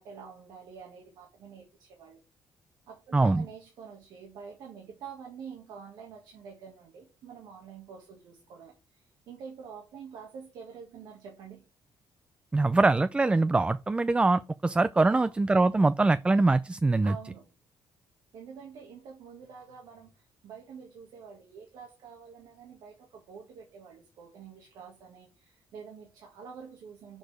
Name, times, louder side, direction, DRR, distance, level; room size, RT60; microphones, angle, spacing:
voice 1, 0.0-2.2 2.9-11.6 15.0-15.3 17.0-17.5 18.3-27.2, right 6 dB, 80° right, 1.7 m, -47 dB
voice 2, 3.1-3.4 12.5-17.1, right 3 dB, 15° right, 0.3 m, -23 dB
6.3 x 4.8 x 5.0 m
cardioid pair, 95°, 7 cm